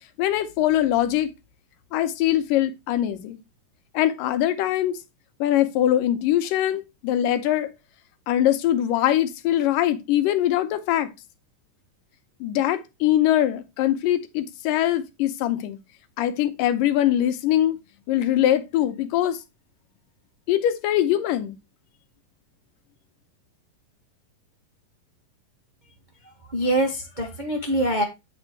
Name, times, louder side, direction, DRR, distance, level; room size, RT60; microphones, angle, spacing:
voice 1, 0.2-1.3 1.9-3.4 3.9-5.0 5.4-7.7 8.3-11.1 12.4-15.8 16.2-17.8 18.1-19.4 20.5-21.6, left 12 dB, 85° left, 2.4 m, -22 dB
voice 2, 25.8-28.0, right 1 dB, 85° right, 0.4 m, -25 dB
9.0 x 4.3 x 4.5 m
omnidirectional pair, 3.9 m